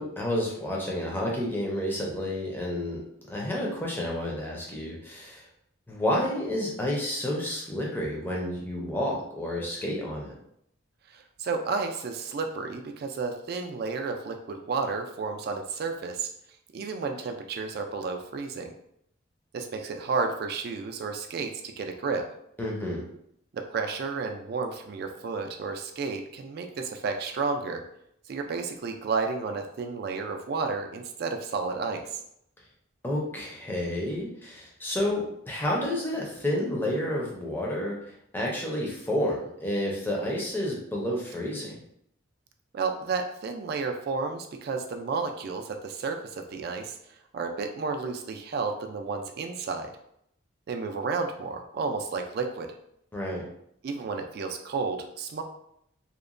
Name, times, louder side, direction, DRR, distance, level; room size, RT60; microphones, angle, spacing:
voice 1, 0.0-3.0 3.3-5.4 5.9-10.3 22.6-23.0 33.0-38.0 38.3-41.8 53.1-53.5, left 1 dB, 10° left, -3 dB, 0.5 m, -30 dB
voice 2, 11.1-16.3 16.7-18.8 19.5-22.3 23.5-27.8 28.3-32.2 42.7-47.0 47.3-49.9 50.7-52.7 53.8-55.4, right 4 dB, 50° right, 4 dB, 0.3 m, -32 dB
2.9 x 2.1 x 2.5 m, 0.73 s
head